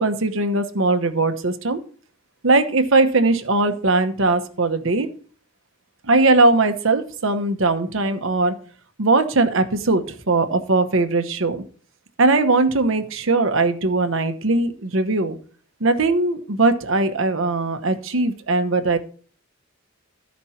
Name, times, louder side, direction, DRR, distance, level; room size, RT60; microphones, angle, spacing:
voice 1, 0.0-1.8 2.4-5.1 6.0-8.5 9.0-11.6 12.2-15.4 15.8-19.0, right 3 dB, 70° right, 8 dB, 1.0 m, -20 dB
13.5 x 5.2 x 4.3 m, 0.43 s
head